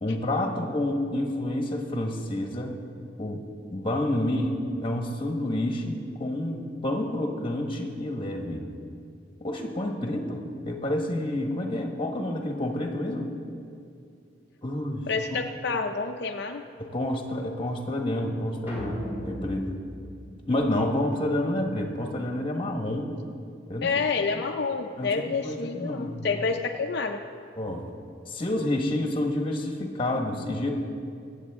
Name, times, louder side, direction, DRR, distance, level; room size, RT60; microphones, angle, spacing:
voice 1, 0.0-2.8 3.2-3.4 3.7-8.7 9.4-13.3 14.6-15.4 16.8-19.7 20.5-23.1 23.7-23.9 24.3-24.4 25.0-26.3 27.6-27.9 28.3-30.7, left 1 dB, 30° left, 2 dB, 1.4 m, -29 dB
voice 2, 15.1-16.6 23.8-27.2, left 4 dB, 60° left, 3 dB, 0.6 m, -28 dB
sound 1, 18.7-21.1, equal, 15° right, 3.8 m, -37 dB
24.0 x 8.2 x 3.6 m, 2.4 s
head